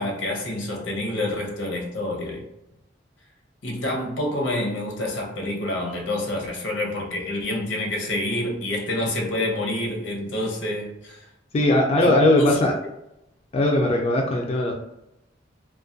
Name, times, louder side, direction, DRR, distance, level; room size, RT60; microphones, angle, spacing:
voice 1, 0.0-2.5 3.6-11.3 12.0-12.1 12.4-12.6, left 1 dB, 85° left, 0 dB, 0.7 m, -27 dB
voice 2, 11.5-12.7 13.5-14.7, left 1 dB, 35° left, 0 dB, 0.3 m, -19 dB
2.3 x 2.1 x 2.5 m, 0.86 s
head